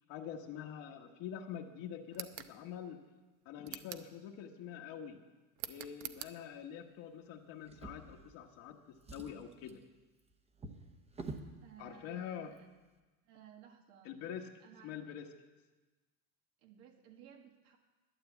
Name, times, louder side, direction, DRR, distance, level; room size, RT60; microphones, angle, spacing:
voice 1, 0.1-3.0 3.4-5.2 5.6-9.8 11.8-12.5 14.0-14.5 14.8-15.3, left 8 dB, 50° left, 3 dB, 1.3 m, -45 dB
sound 1, 2.1-2.5 3.6-4.1 5.6-6.4, right 13 dB, 55° right, 0.8 m, -45 dB
Drawer open or close, 7.6-8.6 8.9-11.6 12.4-12.6 13.0-13.1, right 3 dB, 15° right, 0.9 m, -49 dB
voice 2, 11.6-12.7 13.2-14.2 14.6-14.9 16.6-17.8, right 8 dB, 80° right, 3 dB, 1.8 m, -58 dB
12.0 x 9.7 x 8.0 m, 1.2 s
cardioid pair, 155°, 43 cm